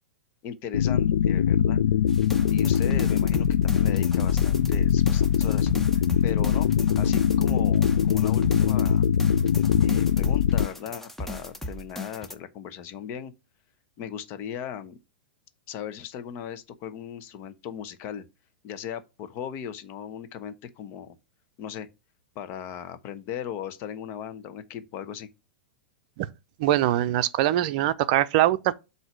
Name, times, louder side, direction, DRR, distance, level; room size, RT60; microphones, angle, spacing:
voice 1, 0.4-1.8 2.5-5.7 6.2-6.7 7.0-9.1 9.8-13.3 14.0-15.0 15.7-18.3 18.6-21.2 21.6-21.9 22.3-25.3, left 8 dB, 45° left, 0.9 m, -37 dB
sound 1, 0.7-10.7, left 8 dB, 75° left, 0.4 m, -22 dB
sound 2, 2.1-12.3, left 1 dB, 5° left, 0.8 m, -37 dB
voice 2, 26.6-28.8, right 13 dB, 55° right, 0.5 m, -23 dB
7.8 x 2.7 x 6.1 m
hypercardioid pair, 110°, 6 cm